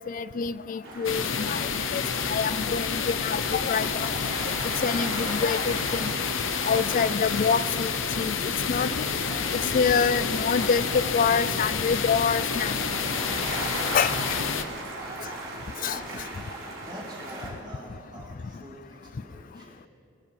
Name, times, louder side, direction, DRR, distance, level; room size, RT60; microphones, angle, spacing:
voice 1, 0.0-4.1 4.8-6.1 6.6-7.9 8.2-9.1 9.5-12.8 13.9-14.4 15.8-16.2, left 6 dB, 40° left, 16 dB, 0.3 m, -26 dB
sound 1, 0.8-17.5, right 2 dB, 70° right, 4.4 m, -38 dB
sound 2, 1.0-14.6, left 6 dB, 75° left, 0.8 m, -29 dB
voice 2, 15.0-15.4 15.7-16.3 16.5-19.8, equal, 25° right, -6 dB, 4.2 m, -45 dB
22.5 x 8.5 x 6.9 m, 2.5 s
head